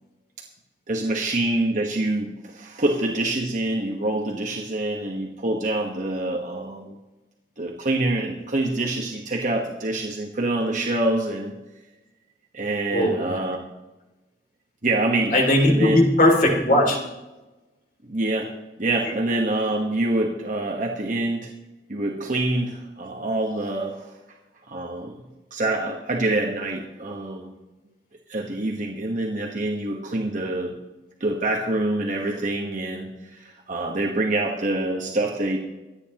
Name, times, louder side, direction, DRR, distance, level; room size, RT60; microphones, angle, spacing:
voice 1, 0.9-7.0 7.6-11.5 12.5-13.6 14.8-16.0 18.0-18.5 18.8-21.5 21.9-24.1 24.7-25.1 25.5-27.5 28.3-30.7 31.2-35.6, right 2 dB, 45° right, 0 dB, 1.3 m, -26 dB
voice 2, 12.9-13.3 15.3-17.0, left 1 dB, 50° left, 1 dB, 2.9 m, -18 dB
24.5 x 9.7 x 3.0 m, 1.1 s
head